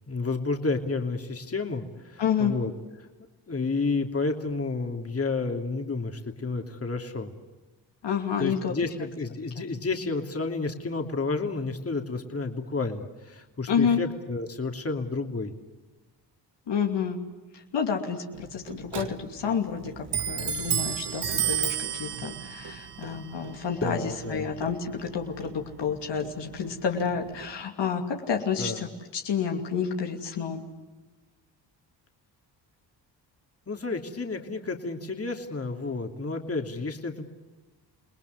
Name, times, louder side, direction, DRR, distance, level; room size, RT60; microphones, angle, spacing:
voice 1, 0.1-2.7 3.5-7.3 8.4-15.5 23.8-24.5 28.6-28.8 33.7-37.3, left 3 dB, 30° left, 4 dB, 3.0 m, -31 dB
voice 2, 2.2-2.5 8.0-8.7 13.7-14.0 16.7-17.2 17.5-30.6, left 7 dB, 70° left, 3 dB, 2.8 m, -29 dB
Clock, 18.3-27.6, right 9 dB, 65° right, 1.8 m, -34 dB
29.0 x 19.5 x 9.6 m, 1.2 s
supercardioid pair, 60°, 44 cm